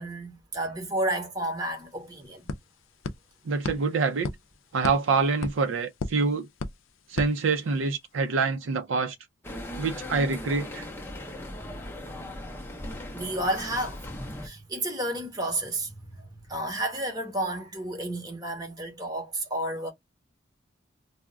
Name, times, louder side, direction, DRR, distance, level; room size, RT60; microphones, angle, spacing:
voice 1, 0.0-2.5 11.6-12.4 13.1-14.0 14.4-19.9, right 1 dB, 20° right, 0.8 m, -32 dB
sound 1, 1.4-1.5 1.7-8.1, left 3 dB, 80° left, 0.4 m, -38 dB
voice 2, 3.5-4.3 4.7-6.5 7.1-9.2 9.8-10.9, right 4 dB, 75° right, 0.4 m, -26 dB
sound 2, 9.4-14.5, left 1 dB, 10° left, 0.5 m, -38 dB
2.2 x 2.0 x 3.5 m
head